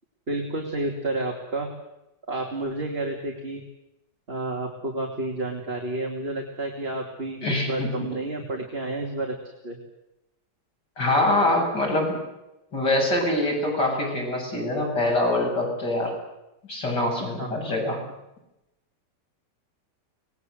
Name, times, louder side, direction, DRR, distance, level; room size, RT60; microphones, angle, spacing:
voice 1, 0.3-1.7 2.3-3.6 4.3-9.3 9.6-9.8 17.4-17.6, right 2 dB, 30° right, 1 dB, 2.9 m, -30 dB
voice 2, 7.4-7.9 11.0-12.2 12.7-16.1 16.7-18.0, left 1 dB, 70° left, -1 dB, 8.3 m, -24 dB
25.5 x 20.5 x 8.0 m, 0.92 s
omnidirectional pair, 1.9 m